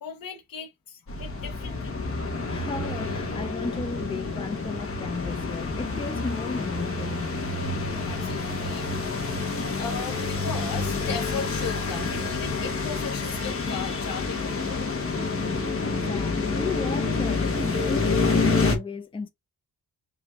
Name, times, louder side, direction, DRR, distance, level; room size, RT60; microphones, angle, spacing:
voice 1, 0.0-2.0 8.0-9.0 9.8-14.9, left 5 dB, 65° left, 1.1 m, -37 dB
sound 1, 1.1-18.8, left 4 dB, 35° left, 1.0 m, -28 dB
voice 2, 2.5-7.4 12.5-12.7 15.8-19.3, left 4 dB, 15° left, 0.5 m, -35 dB
5.2 x 2.7 x 2.3 m
wide cardioid pair, 165°, 37 cm